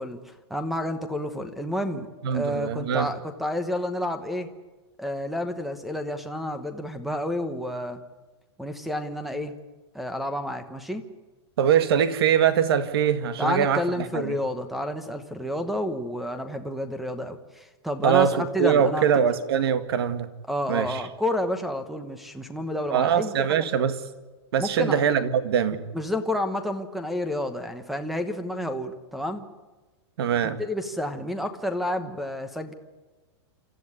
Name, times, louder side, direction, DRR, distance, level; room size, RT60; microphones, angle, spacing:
voice 1, 0.0-4.5 5.0-8.0 8.6-9.5 9.9-11.0 13.4-18.3 18.5-19.2 20.5-23.6 24.6-25.0 25.9-29.4 30.6-32.7, left 1 dB, ahead, 10 dB, 1.1 m, -30 dB
voice 2, 2.2-3.1 11.6-14.3 18.0-20.3 20.7-21.0 22.9-24.0 24.5-25.9 30.2-30.6, right 8 dB, 60° right, 11 dB, 2.0 m, -23 dB
28.5 x 14.0 x 9.7 m, 1.2 s
supercardioid pair, 175°, 15 cm